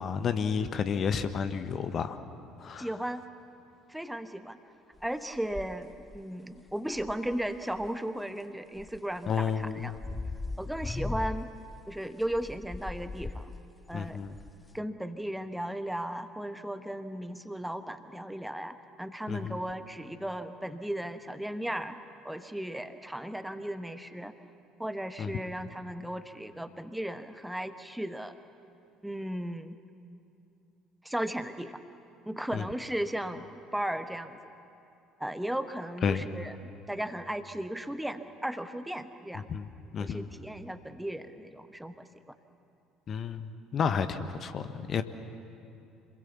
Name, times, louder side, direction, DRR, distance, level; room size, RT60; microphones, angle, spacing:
voice 1, 0.0-2.2 2.6-2.9 9.3-9.9 13.9-14.4 19.3-19.6 25.2-25.3 32.5-32.6 36.0-36.3 39.3-39.7 39.9-40.3 43.1-45.0, left 6 dB, 40° left, 10 dB, 1.1 m, -31 dB
voice 2, 2.8-3.2 3.9-4.6 5.0-10.0 10.6-11.5 11.9-13.5 13.9-14.2 14.7-22.0 22.2-24.3 24.8-28.3 29.0-29.8 31.0-31.7 32.3-34.4 35.2-36.5 36.9-39.5 40.0-42.3, right 1 dB, 5° right, 10 dB, 1.1 m, -36 dB
sound 1, 5.0-5.1 5.3-6.2 6.6-7.9 8.8-14.8, left 3 dB, 15° left, 0.6 m, -39 dB
27.0 x 21.5 x 7.2 m, 2.7 s
figure-of-eight pair, 55°, 0 cm